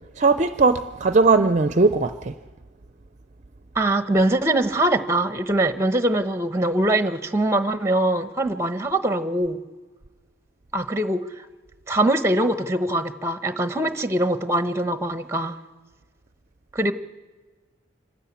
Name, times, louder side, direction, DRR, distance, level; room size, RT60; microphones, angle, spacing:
voice 1, 0.2-2.3, right 3 dB, 40° right, 0.5 m, -19 dB
voice 2, 3.7-9.6 10.7-11.5 11.9-15.6 16.7-16.9, right 1 dB, 15° right, 0.9 m, -23 dB
26.0 x 13.0 x 8.5 m
head